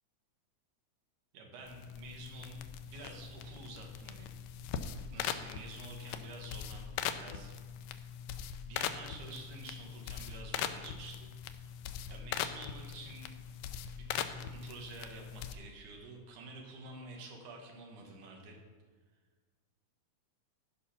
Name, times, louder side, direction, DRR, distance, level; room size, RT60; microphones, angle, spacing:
voice 1, 1.3-2.6 2.9-4.3 5.1-7.6 8.7-11.3 12.1-13.3 14.0-18.6, right 3 dB, 70° right, 1 dB, 3.0 m, -49 dB
sound 1, 1.7-15.6, left 9 dB, 85° left, 2.2 m, -41 dB
13.5 x 5.6 x 5.8 m, 1.5 s
omnidirectional pair, 3.7 m